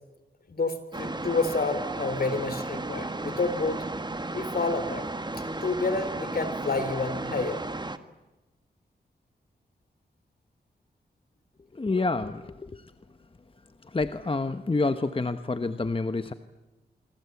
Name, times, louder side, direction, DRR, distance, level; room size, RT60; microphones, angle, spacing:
voice 1, 0.5-3.8 4.3-5.1 5.6-7.6 12.0-12.1, left 3 dB, 60° left, 11 dB, 3.3 m, -29 dB
sound 1, 0.9-8.0, right 2 dB, 25° right, 1.6 m, -34 dB
voice 2, 11.7-12.9 13.8-16.3, left 3 dB, 30° left, 10 dB, 1.2 m, -28 dB
25.5 x 25.5 x 8.4 m, 1.1 s
cardioid pair, 60°, 18 cm